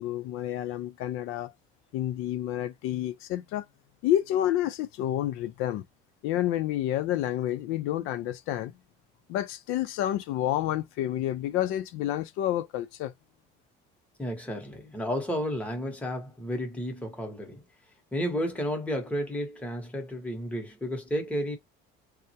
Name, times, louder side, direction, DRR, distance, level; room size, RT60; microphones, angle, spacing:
voice 1, 0.0-1.5 1.9-3.6 4.0-5.8 6.2-8.7 9.3-13.1, left 12 dB, 85° left, 0.4 m, -29 dB
voice 2, 14.2-17.6 18.1-21.6, equal, 5° left, 0.7 m, -32 dB
3.4 x 2.0 x 2.7 m
cardioid pair, 170°, 21 cm